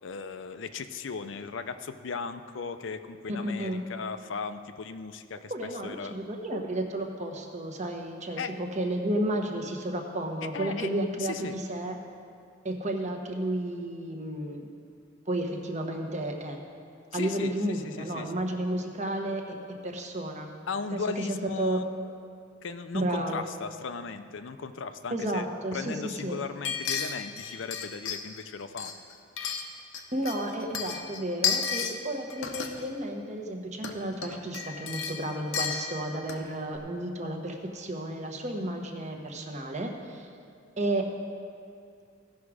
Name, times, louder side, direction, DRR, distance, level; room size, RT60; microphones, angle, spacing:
voice 1, 0.0-5.5 5.8-6.2 8.4-8.5 10.5-10.9 11.2-11.5 17.1-18.4 20.7-21.8 22.6-25.5 25.7-28.9, left 5 dB, 70° left, 10 dB, 0.5 m, -37 dB
voice 2, 3.3-3.8 5.5-12.0 12.6-14.7 15.3-16.6 17.1-20.5 20.9-21.8 22.9-23.4 25.1-26.4 30.1-40.3 40.8-41.1, right 1 dB, 35° right, 3 dB, 1.0 m, -32 dB
sound 1, 26.6-28.4 28.8-30.0 30.3-32.0 32.3-32.9 33.7-33.9 34.2-36.5 36.8-36.9, left 7 dB, 90° left, 0.8 m, -33 dB
16.0 x 6.1 x 4.8 m, 2.3 s
head